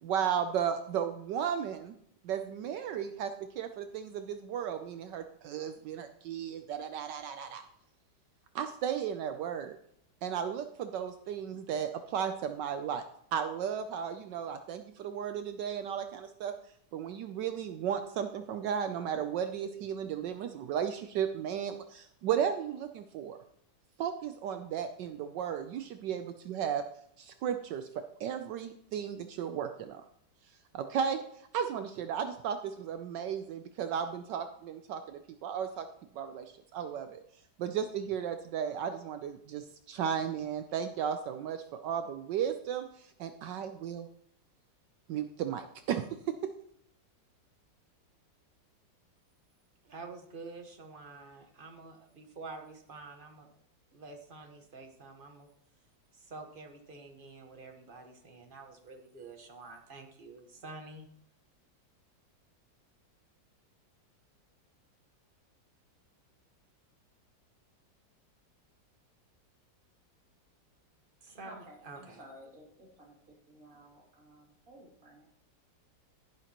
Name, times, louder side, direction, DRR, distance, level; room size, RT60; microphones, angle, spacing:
voice 1, 0.0-2.0 2.2-7.6 8.5-9.8 10.2-13.0 13.3-16.5 16.9-23.4 24.0-26.9 27.2-30.0 30.7-31.2 31.5-35.9 36.1-37.2 37.6-44.1 45.1-46.3, right 8 dB, 75° right, 8 dB, 1.2 m, -35 dB
voice 2, 49.8-53.5 53.9-55.5 56.1-61.1 71.2-71.5 71.8-72.2, right 3 dB, 30° right, 4 dB, 1.3 m, -48 dB
voice 3, 71.4-73.2 73.5-75.3, right 1 dB, 45° right, -2 dB, 3.1 m, -54 dB
11.5 x 11.0 x 3.0 m, 0.70 s
omnidirectional pair, 2.0 m